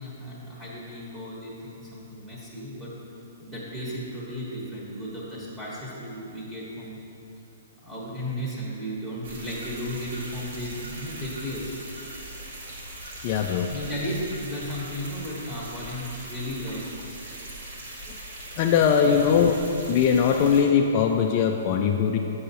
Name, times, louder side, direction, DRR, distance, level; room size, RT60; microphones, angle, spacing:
voice 1, 0.0-2.9 3.4-7.0 7.8-11.7 13.7-16.8 18.9-19.2, equal, 10° right, -7 dB, 1.1 m, -35 dB
sound 1, 9.2-20.6, right 1 dB, 70° right, 1.4 m, -40 dB
voice 2, 13.2-13.7 18.6-19.6 19.9-22.2, left 7 dB, 40° left, 3 dB, 0.3 m, -21 dB
7.4 x 5.5 x 2.7 m, 3.0 s
hypercardioid pair, 125°, 0 cm